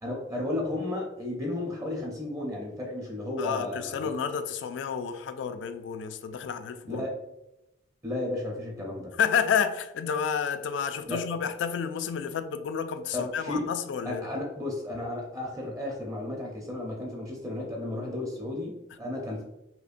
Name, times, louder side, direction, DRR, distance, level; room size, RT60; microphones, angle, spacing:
voice 1, 0.0-4.1 6.9-7.2 8.0-9.2 11.1-11.3 13.1-13.6 14.0-19.4, left 1 dB, 15° right, 0.6 m, -33 dB
voice 2, 3.4-7.0 9.2-14.3, left 7 dB, 65° left, 0.3 m, -30 dB
5.0 x 2.1 x 2.5 m
head